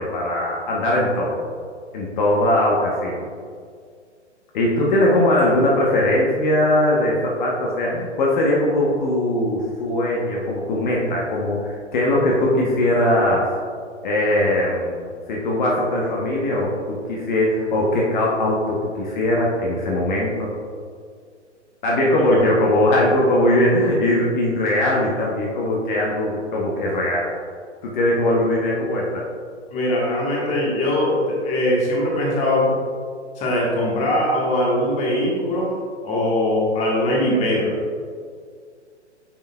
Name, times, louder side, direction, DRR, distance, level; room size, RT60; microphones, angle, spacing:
voice 1, 0.0-1.4 1.9-3.3 4.5-13.5 14.0-20.5 21.8-27.3 27.8-29.2, left 1 dB, 40° left, -3 dB, 1.1 m, -20 dB
voice 2, 29.7-32.8 33.4-35.7 36.0-37.7, left 1 dB, 20° left, -3 dB, 1.3 m, -21 dB
8.8 x 5.4 x 2.3 m, 2.1 s
figure-of-eight pair, 125°, 36 cm